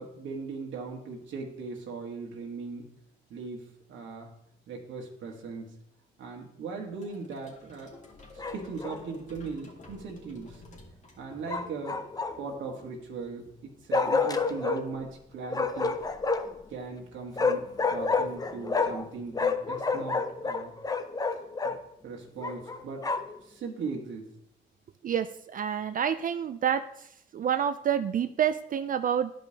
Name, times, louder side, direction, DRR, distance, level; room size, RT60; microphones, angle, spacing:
voice 1, 0.0-2.9 3.3-4.3 4.7-5.8 6.2-7.9 8.3-10.6 11.2-12.0 12.4-16.0 16.7-20.7 21.6-21.7 22.0-23.1 23.4-24.3, right 4 dB, 75° right, 0 dB, 1.3 m, -39 dB
sound 1, 7.0-11.8, left 2 dB, 40° left, 2.0 m, -52 dB
Bark, 8.4-9.0 11.5-12.6 13.9-14.8 15.5-16.6 17.4-19.1 19.3-21.8 22.4-23.4, left 4 dB, 20° left, 0.5 m, -29 dB
voice 2, 25.0-29.3, right 9 dB, 45° right, 10 dB, 0.4 m, -28 dB
11.5 x 5.2 x 2.8 m, 0.74 s
cardioid pair, 90°, 20 cm